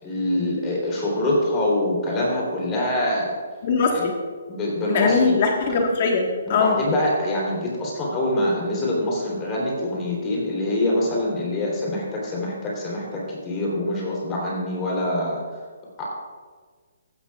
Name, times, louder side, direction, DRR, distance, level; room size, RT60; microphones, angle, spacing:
voice 1, 0.0-3.3 3.9-4.1 4.5-5.4 6.5-15.6 16.0-16.1, left 1 dB, 20° left, -4 dB, 3.4 m, -25 dB
voice 2, 3.6-4.1 4.9-6.8, left 4 dB, 40° left, 1 dB, 1.6 m, -21 dB
15.5 x 11.5 x 2.4 m, 1.5 s
hypercardioid pair, 160°, 0 cm